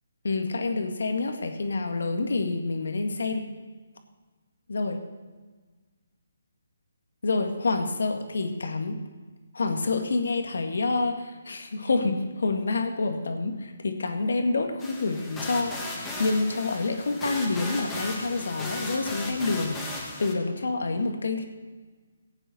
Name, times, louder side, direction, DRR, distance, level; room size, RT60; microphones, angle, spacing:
voice 1, 0.2-3.5 4.7-5.0 7.2-9.0 9.5-13.6 13.8-19.8 20.2-21.4, left 3 dB, 70° left, 4 dB, 1.9 m, -27 dB
sound 1, 14.8-20.3, left 2 dB, 10° left, 2.6 m, -36 dB
17.5 x 9.0 x 4.3 m, 1.3 s
figure-of-eight pair, 150°, 0 cm